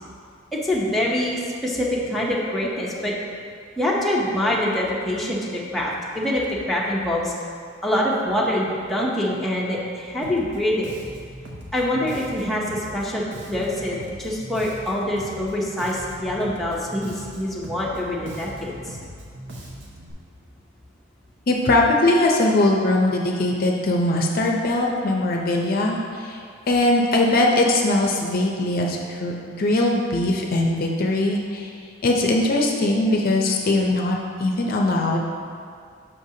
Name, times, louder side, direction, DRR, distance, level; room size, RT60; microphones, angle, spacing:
voice 1, 0.5-3.1 3.8-7.3 7.8-10.9 11.7-19.0, left 1 dB, ahead, -5 dB, 0.7 m, -25 dB
Bass guitar, 10.2-20.1, right 1 dB, 60° right, 0.8 m, -40 dB
voice 2, 21.5-31.7 32.0-35.3, left 2 dB, 50° left, 0 dB, 0.5 m, -21 dB
6.5 x 5.5 x 2.8 m, 2.3 s
head